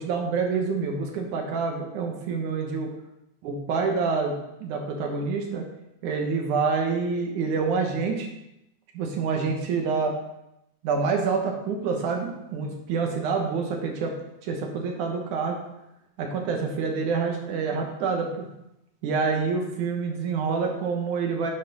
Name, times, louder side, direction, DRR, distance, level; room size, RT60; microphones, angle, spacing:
voice 1, 0.0-2.9 3.4-5.7 6.0-8.3 8.9-10.2 10.8-14.1 14.4-15.6 16.2-18.5 19.0-21.5, right 5 dB, 90° right, 2 dB, 2.7 m, -27 dB
9.5 x 4.3 x 5.3 m, 0.86 s
omnidirectional pair, 3.4 m